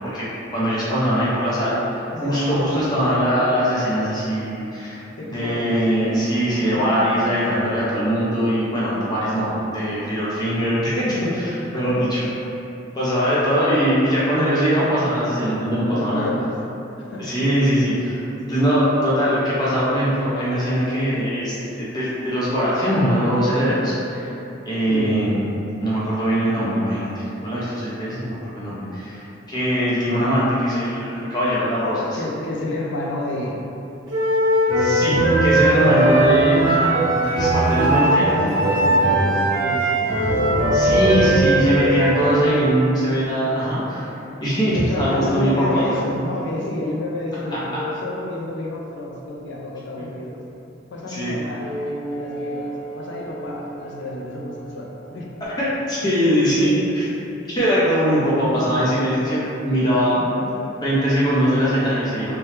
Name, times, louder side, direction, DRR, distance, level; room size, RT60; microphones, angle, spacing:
voice 1, 0.5-12.2 12.9-16.3 17.2-24.3 24.6-25.4 25.8-32.2 34.8-35.2 35.4-38.3 40.3-40.4 40.7-44.1 44.4-45.8 50.0-50.1 51.1-51.4 55.6-57.1 57.5-60.2 60.8-62.3, equal, 20° left, -9 dB, 0.6 m, -21 dB
voice 2, 2.1-2.9 5.2-5.8 9.0-9.6 11.7-12.1 15.8-16.5 17.0-17.7 24.9-25.2 32.2-33.6 34.7-35.8 37.8-40.6 44.7-50.4 50.9-51.7 52.2-55.3 58.3-58.6 58.9-59.0 60.2-60.3 60.6-60.7, left 1 dB, 70° left, -2 dB, 0.4 m, -30 dB
Wind instrument woodwind instrument, 34.1-42.6, right 1 dB, 90° right, 0.7 m, -20 dB
sound 1, 34.7-39.7 40.1-41.6, right 1 dB, 50° right, 0.5 m, -23 dB
sound 2, 51.6-56.5, right 1 dB, 5° right, 1.1 m, -34 dB
2.8 x 2.2 x 3.2 m, 2.9 s
head